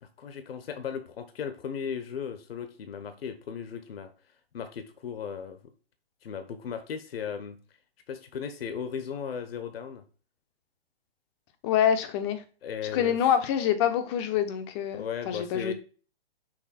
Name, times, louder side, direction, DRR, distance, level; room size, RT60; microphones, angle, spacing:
voice 1, 0.0-4.1 4.5-5.6 6.2-7.6 8.1-10.0 12.6-13.2 14.9-15.7, left 7 dB, 70° left, 1.0 m, -36 dB
voice 2, 11.6-12.4 12.9-15.7, left 9 dB, 25° left, 0.8 m, -26 dB
6.3 x 3.9 x 4.2 m
hypercardioid pair, 145°, 31 cm